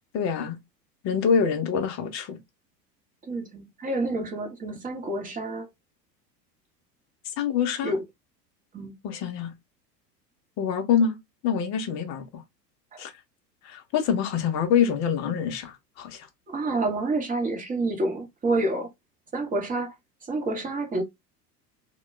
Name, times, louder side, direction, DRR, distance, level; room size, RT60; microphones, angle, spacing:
voice 1, 0.1-0.6 1.0-2.4 7.4-7.9 9.0-9.5 10.6-11.2 11.4-12.4 13.0-13.1 13.6-16.3, left 7 dB, 35° left, 0.7 m, -25 dB
voice 2, 3.3-5.7 7.8-8.0 8.7-8.9 16.5-18.9 19.3-19.9 20.3-21.0, right 2 dB, 15° right, 0.9 m, -28 dB
2.2 x 2.2 x 3.1 m
figure-of-eight pair, 85°, 49 cm